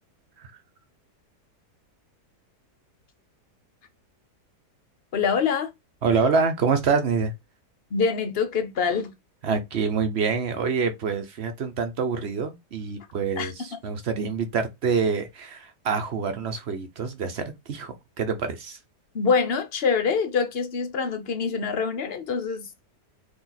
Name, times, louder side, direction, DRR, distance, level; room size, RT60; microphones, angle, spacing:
voice 1, 5.1-5.7 7.9-9.1 13.4-13.5 19.1-22.7, left 5 dB, 50° left, 0.8 m, -25 dB
voice 2, 6.0-7.3 9.4-18.8, right 5 dB, 50° right, 1.0 m, -26 dB
4.5 x 2.9 x 4.0 m
omnidirectional pair, 1.8 m